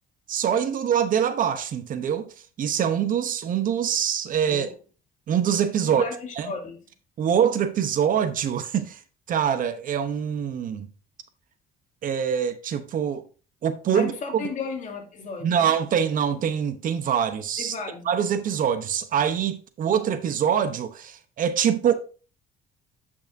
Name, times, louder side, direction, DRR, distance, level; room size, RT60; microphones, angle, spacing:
voice 1, 0.3-2.3 2.6-4.7 5.3-6.1 6.4-6.5 7.2-9.0 9.3-10.9 12.0-13.2 13.6-14.4 15.4-17.7 18.1-21.9, right 8 dB, 55° right, 0.9 m, -24 dB
voice 2, 5.8-6.8 13.9-15.7 17.6-18.1, left 4 dB, 45° left, 2.4 m, -35 dB
9.0 x 5.7 x 2.7 m
cardioid pair, 110°, 17 cm